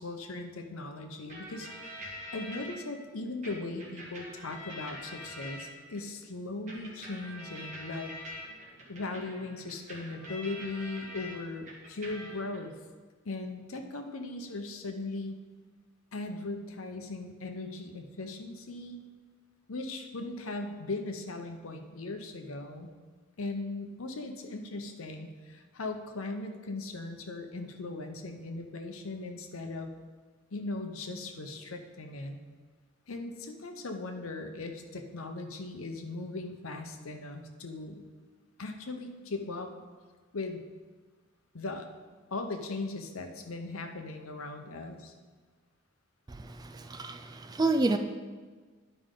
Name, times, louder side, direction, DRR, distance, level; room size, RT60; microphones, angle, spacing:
voice 1, 0.0-8.2 8.9-12.7 13.2-15.4 16.1-19.0 19.7-22.9 23.4-30.0 30.5-32.4 33.1-38.0 38.6-39.7 40.3-40.6 41.5-41.9 42.3-45.1, left 2 dB, 80° left, 5 dB, 0.8 m, -38 dB
sound 1, 1.3-2.7 3.4-6.0 6.7-11.4 11.7-12.6, equal, 35° right, 1.7 m, -45 dB
voice 2, 46.3-48.0, right 2 dB, 20° right, 7 dB, 0.3 m, -29 dB
11.0 x 5.0 x 3.8 m, 1.4 s
head